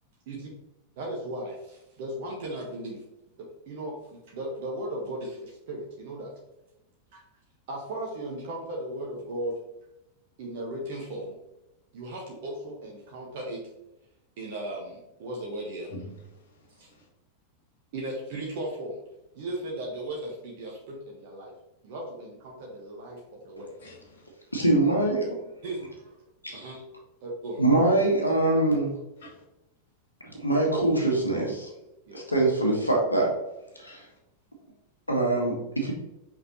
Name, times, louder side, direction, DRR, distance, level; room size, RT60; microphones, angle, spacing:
voice 1, 1.0-3.0 3.4-6.3 7.1-7.2 7.7-9.6 10.4-11.4 11.9-13.7 14.4-15.9 16.8-16.9 17.9-19.0 19.3-21.5 21.8-23.7 25.6-26.2 26.5-26.8 27.2-27.6 32.1-32.2, right 1 dB, 50° right, 1.3 m, -36 dB
voice 2, 15.9-17.1 23.8-24.3 29.2-29.4 33.7-34.2, left 1 dB, 60° left, 1.8 m, -47 dB
voice 3, 24.5-25.4 26.4-26.7 27.6-28.9 30.2-31.7 32.1-33.3 33.8-34.0 35.1-35.9, right 2 dB, 80° left, 1.7 m, -24 dB
5.7 x 5.3 x 3.0 m
figure-of-eight pair, 90°, 0 cm